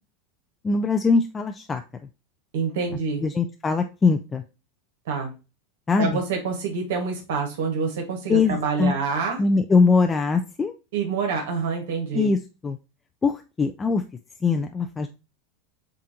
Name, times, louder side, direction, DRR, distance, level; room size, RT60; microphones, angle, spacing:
voice 1, 0.6-1.8 3.2-4.4 5.9-6.2 8.3-8.9 9.4-10.7 12.1-12.8 13.2-14.0 14.4-15.1, left 4 dB, 15° left, 6 dB, 0.4 m, -22 dB
voice 2, 2.5-3.3 5.1-5.3 6.0-9.4 10.9-12.3, right 5 dB, 80° right, 2 dB, 1.4 m, -27 dB
7.3 x 2.5 x 2.8 m, 0.29 s
supercardioid pair, 125°, 0 cm